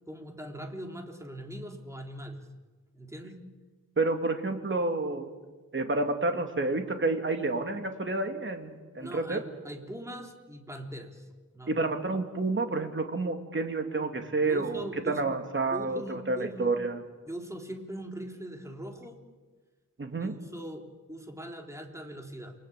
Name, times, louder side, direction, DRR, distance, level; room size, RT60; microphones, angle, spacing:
voice 1, 0.1-2.5 2.9-3.3 9.0-11.3 11.5-11.8 14.4-15.2 15.7-16.7 17.2-19.2 20.2-22.5, right 1 dB, 10° right, 3 dB, 3.3 m, -41 dB
voice 2, 4.0-5.3 5.7-9.4 11.7-17.0 20.0-20.3, right 3 dB, 35° right, 5 dB, 2.8 m, -29 dB
29.0 x 23.5 x 8.6 m, 1.3 s
wide cardioid pair, 140°, 33 cm